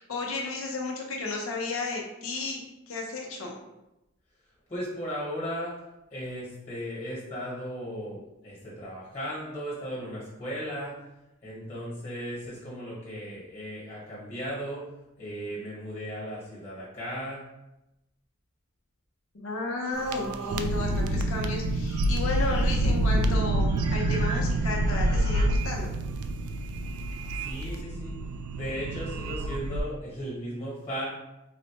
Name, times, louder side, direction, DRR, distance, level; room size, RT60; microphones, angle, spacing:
voice 1, 0.0-3.5 19.3-25.9, left 3 dB, 75° left, -1 dB, 0.7 m, -33 dB
voice 2, 4.7-5.7 6.1-10.9 11.4-14.8 15.2-17.4 27.3-28.1 28.5-31.1, equal, 30° left, -6 dB, 1.3 m, -36 dB
sound 1, 19.9-29.8, right 1 dB, 80° right, 0.3 m, -27 dB
4.1 x 2.1 x 2.9 m, 0.92 s
head